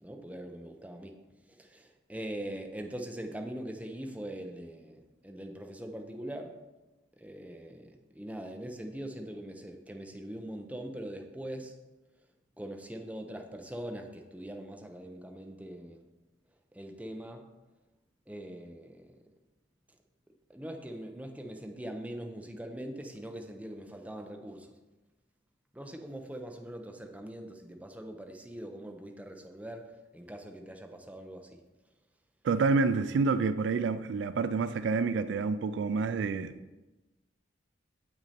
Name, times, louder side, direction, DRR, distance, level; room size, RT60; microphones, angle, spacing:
voice 1, 0.0-1.1 1.5-6.6 7.2-11.7 12.6-16.0 16.7-17.5 18.3-19.2 20.5-24.7 25.7-31.6, right 1 dB, 10° right, 0.6 m, -42 dB
voice 2, 32.4-36.6, right 4 dB, 65° right, 0.3 m, -28 dB
7.7 x 6.0 x 4.2 m
head